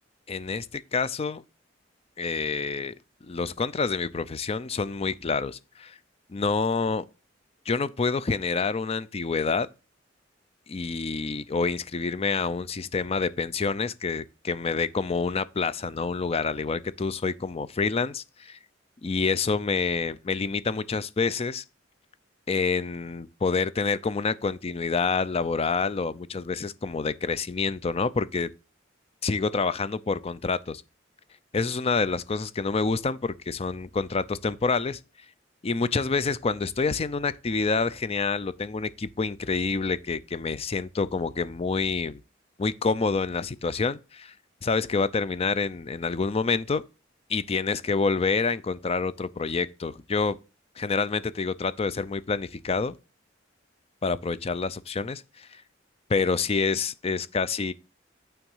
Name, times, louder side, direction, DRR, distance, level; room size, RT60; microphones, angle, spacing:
voice 1, 0.3-1.4 2.2-2.9 3.2-6.0 6.3-7.0 7.7-9.7 10.7-18.6 19.0-21.6 22.5-28.5 29.2-30.8 31.5-35.0 35.6-42.2 42.6-44.3 44.6-46.8 47.3-50.4 50.8-52.9 54.0-55.6 56.1-57.7, left 4 dB, 30° left, 0.5 m, -27 dB
9.0 x 3.5 x 5.5 m
head